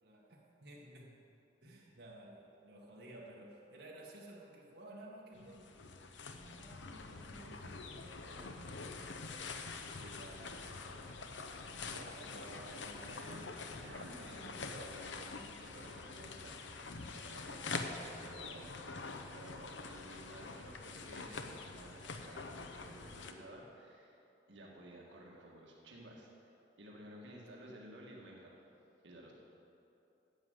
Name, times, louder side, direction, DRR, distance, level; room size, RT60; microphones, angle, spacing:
voice 1, 0.0-1.3 1.6-5.7 6.2-9.6 12.0-12.4 27.6-27.7, right 1 dB, 65° right, -4 dB, 1.7 m, -55 dB
sound 1, 5.3-23.3, left 4 dB, 80° left, 0.8 m, -46 dB
voice 2, 10.0-10.6 11.7-24.2 24.5-26.3 26.8-28.5 29.0-29.3, right 1 dB, 80° right, -2 dB, 1.7 m, -53 dB
10.5 x 7.7 x 7.8 m, 2.8 s
head